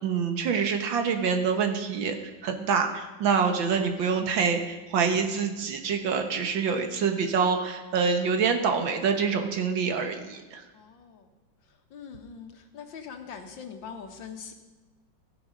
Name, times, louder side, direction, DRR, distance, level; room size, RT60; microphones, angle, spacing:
voice 1, 0.0-10.6, right 5 dB, 80° right, 6 dB, 2.0 m, -26 dB
voice 2, 10.7-11.3 11.9-14.5, left 6 dB, 75° left, 5 dB, 2.0 m, -42 dB
15.0 x 10.5 x 5.2 m, 1.2 s
omnidirectional pair, 2.1 m